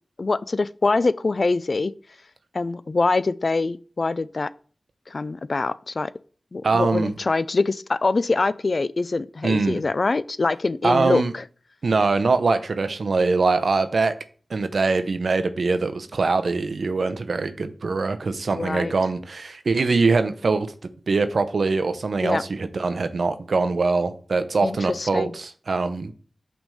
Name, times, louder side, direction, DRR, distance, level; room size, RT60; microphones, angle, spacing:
voice 1, 0.2-1.9 2.5-4.5 5.1-6.1 6.5-11.4 18.5-18.9 22.2-22.4 24.6-25.3, left 3 dB, 55° left, 0.3 m, -24 dB
voice 2, 6.6-7.1 9.4-9.8 10.8-11.3 11.8-14.1 14.5-20.7 21.1-26.1, right 3 dB, 75° right, 0.6 m, -23 dB
6.0 x 3.5 x 5.5 m
wide cardioid pair, 55°, 0 cm